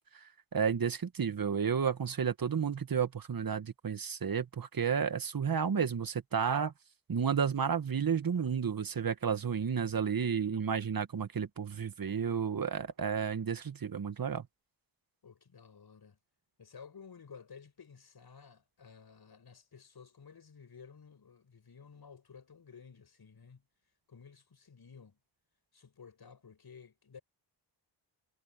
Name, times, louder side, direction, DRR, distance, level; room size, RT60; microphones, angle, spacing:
voice 1, 0.5-6.7 7.1-14.5, right 7 dB, 50° right, 1.9 m, -32 dB
voice 2, 15.2-16.2 16.6-23.6 24.1-25.2 25.7-27.2, left 6 dB, 55° left, 6.4 m, -54 dB
cardioid pair, 55°, 45 cm